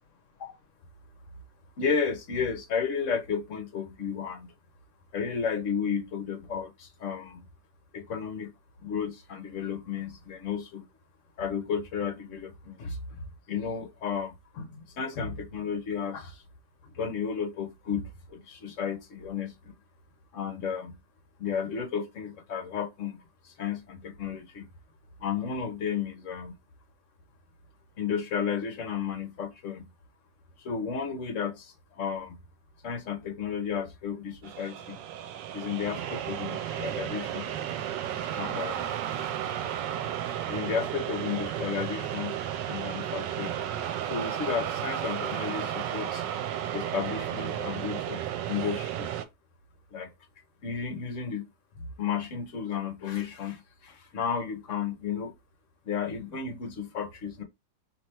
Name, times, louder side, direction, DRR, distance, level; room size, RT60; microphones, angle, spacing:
voice 1, 1.8-4.5 5.1-7.5 7.9-8.5 8.8-10.8 11.4-16.4 16.9-19.7 20.3-21.0 21.4-23.2 23.4-24.7 25.2-26.5 28.0-29.9 30.6-32.4 32.8-35.0 35.5-37.5 38.3-38.8 40.5-42.4 42.7-43.6 44.0-46.2 46.7-48.2 48.5-49.1 49.9-50.1 50.6-51.4 51.8-55.3 55.9-57.4, left 6 dB, 55° left, 1.0 m, -33 dB
sound 1, 34.4-49.3, right 10 dB, 85° right, 1.3 m, -33 dB
3.3 x 3.0 x 4.2 m
omnidirectional pair, 1.9 m